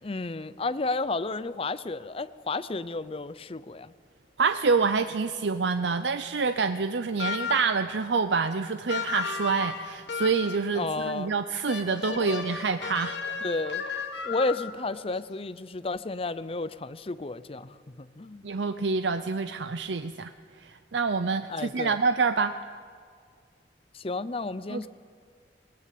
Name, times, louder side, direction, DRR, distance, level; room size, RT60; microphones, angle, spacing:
voice 1, 0.0-3.9 10.7-11.3 12.1-12.2 13.4-13.8 14.2-18.4 21.5-22.0 23.9-24.9, left 3 dB, 30° left, 14 dB, 0.6 m, -32 dB
voice 2, 4.4-13.2 18.4-20.3 20.6-22.6 24.7-24.9, right 4 dB, 80° right, 10 dB, 0.6 m, -27 dB
sound 1, 7.2-7.9 8.9-10.7 11.7-14.9, left 5 dB, 80° left, 1.6 m, -34 dB
19.5 x 19.5 x 8.5 m, 2.1 s
head